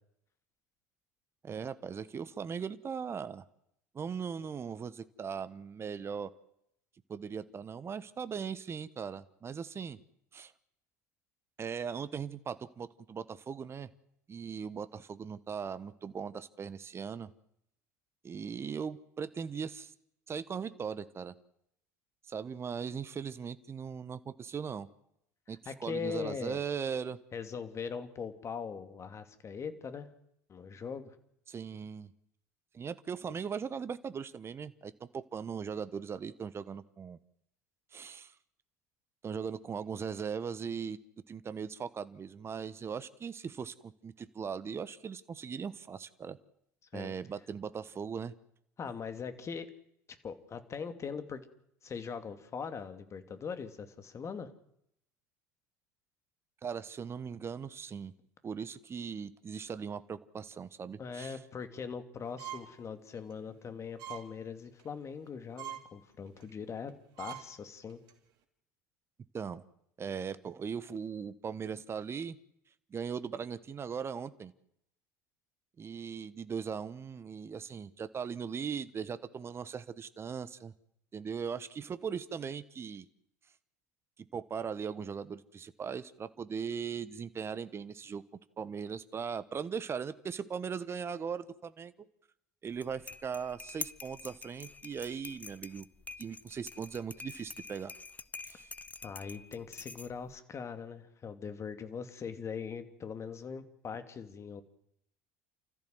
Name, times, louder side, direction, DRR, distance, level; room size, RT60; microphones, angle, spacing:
voice 1, 1.4-3.5 3.9-6.3 7.1-10.0 10.3-10.5 11.6-13.9 14.3-17.3 18.2-19.9 20.3-21.3 22.3-24.9 25.5-27.2 31.5-32.1 32.7-37.2 37.9-38.3 39.2-41.0 41.3-46.4 46.9-48.3 56.6-58.1 58.4-61.4 69.3-69.6 70.0-72.4 72.9-74.5 75.8-80.7 81.1-83.1 84.2-88.2 88.6-91.9 92.6-95.9 96.2-97.9 98.4-98.7, right 6 dB, 30° right, 14 dB, 1.2 m, -39 dB
voice 2, 25.7-26.6 27.3-30.1 30.5-31.1 46.9-47.1 48.8-49.7 50.2-51.4 51.8-54.5 61.0-66.9 67.2-68.0 99.0-104.6, left 6 dB, 35° left, 9 dB, 2.7 m, -41 dB
sound 1, 62.4-62.8 63.2-63.3 64.0-64.3 64.6-64.9 65.3-65.4 65.6-65.8 66.4-66.5 66.9-67.0 67.2-67.4 67.9-68.1, right 11 dB, 55° right, 3.1 m, -43 dB
sound 2, 92.7-100.4, left 4 dB, 15° left, 0.8 m, -47 dB
29.5 x 14.0 x 7.9 m, 0.76 s
hypercardioid pair, 70°, 9 cm